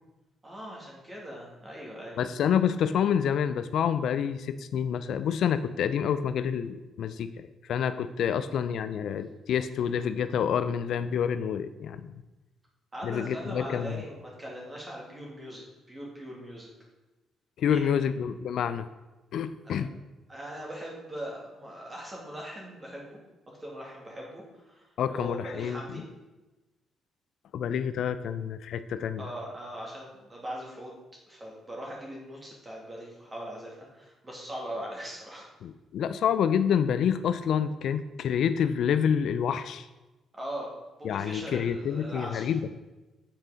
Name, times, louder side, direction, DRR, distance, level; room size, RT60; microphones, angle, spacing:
voice 1, 0.4-2.2 8.3-8.6 12.9-15.6 15.9-16.7 17.6-18.2 19.6-20.0 20.3-23.2 23.5-26.0 29.2-31.0 31.3-35.5 40.3-40.7 41.0-42.5, equal, 25° right, -3 dB, 2.3 m, -40 dB
voice 2, 2.2-7.3 7.7-12.1 13.0-14.0 17.6-18.9 19.3-19.9 25.0-25.8 27.5-29.2 35.6-39.9 41.0-42.6, left 8 dB, 70° left, 12 dB, 0.3 m, -28 dB
7.5 x 4.5 x 3.9 m, 1.1 s
cardioid pair, 90°, 0 cm